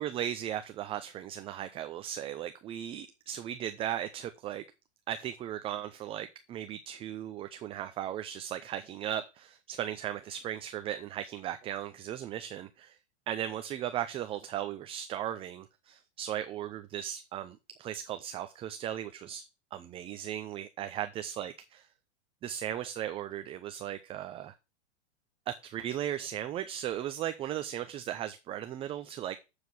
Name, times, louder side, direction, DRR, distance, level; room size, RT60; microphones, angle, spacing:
voice 1, 0.0-4.6 5.1-13.0 13.3-19.4 19.7-21.5 22.4-24.5 25.5-29.4, right 11 dB, 15° right, 0.4 m, -37 dB
8.0 x 4.8 x 6.9 m
hypercardioid pair, 110°, 37 cm